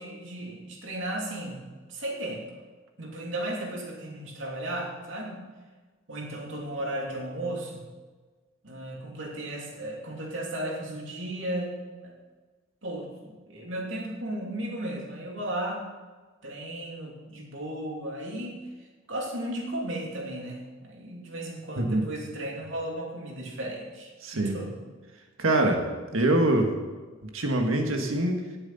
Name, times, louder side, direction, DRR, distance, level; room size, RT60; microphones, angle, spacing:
voice 1, 0.0-1.6 1.9-2.4 3.0-5.4 6.1-7.9 8.6-12.1 12.8-15.9 16.4-18.7 19.1-24.7, right 1 dB, 65° right, -2 dB, 2.9 m, -35 dB
voice 2, 24.2-24.5 25.4-25.8 26.1-26.8 27.3-28.4, right 1 dB, 80° right, 3 dB, 1.7 m, -24 dB
18.0 x 7.8 x 4.2 m, 1.4 s
head